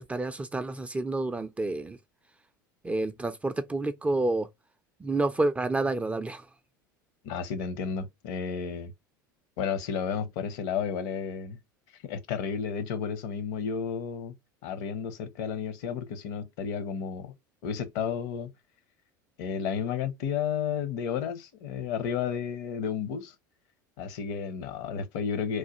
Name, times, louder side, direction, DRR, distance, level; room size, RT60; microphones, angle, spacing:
voice 1, 0.0-2.0 2.8-4.5 5.0-6.4, right 2 dB, 10° right, 0.3 m, -29 dB
voice 2, 7.2-8.9 9.6-11.6 12.0-14.3 14.6-17.3 17.6-18.5 19.4-23.3 24.0-25.6, left 7 dB, 60° left, 0.7 m, -32 dB
3.1 x 2.1 x 2.9 m
figure-of-eight pair, 75°, 11 cm